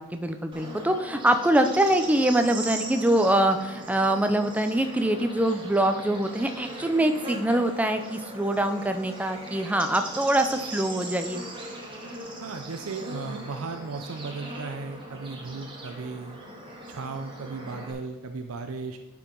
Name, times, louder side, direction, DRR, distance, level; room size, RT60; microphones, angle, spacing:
voice 1, 0.0-11.4, right 1 dB, 5° right, 7 dB, 0.4 m, -24 dB
Bird / Insect, 0.5-17.9, right 1 dB, 20° right, 1.3 m, -39 dB
voice 2, 12.4-16.4 16.9-19.0, right 4 dB, 70° right, 6 dB, 0.5 m, -36 dB
10.5 x 4.6 x 3.8 m, 1.1 s
head